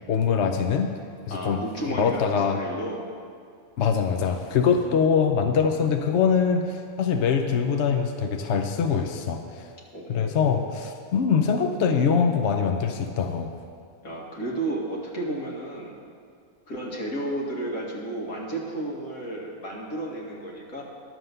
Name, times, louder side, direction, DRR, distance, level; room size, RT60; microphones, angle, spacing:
voice 1, 0.1-0.9 1.3-1.6 2.0-2.6 3.8-9.7 10.1-13.5, left 6 dB, 60° left, 5 dB, 0.9 m, -23 dB
voice 2, 1.3-3.0 9.9-10.6 14.0-15.9 16.7-20.8, right 1 dB, 80° left, -3 dB, 2.3 m, -32 dB
11.0 x 7.6 x 6.7 m, 2.3 s
omnidirectional pair, 1.5 m